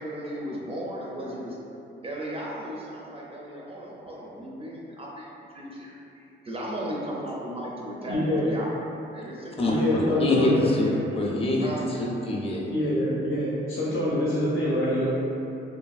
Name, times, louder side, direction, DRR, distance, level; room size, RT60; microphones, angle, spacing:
voice 1, 0.0-1.5 2.0-8.7 9.1-11.0 11.6-11.9, right 1 dB, 30° right, -4 dB, 0.4 m, -36 dB
voice 2, 8.1-8.5 9.6-10.7 12.7-15.1, left 1 dB, 75° left, -8 dB, 0.6 m, -25 dB
voice 3, 9.6-12.7, left 1 dB, 30° left, -2 dB, 0.5 m, -25 dB
2.7 x 2.6 x 2.3 m, 2.8 s
cardioid pair, 75°, 21 cm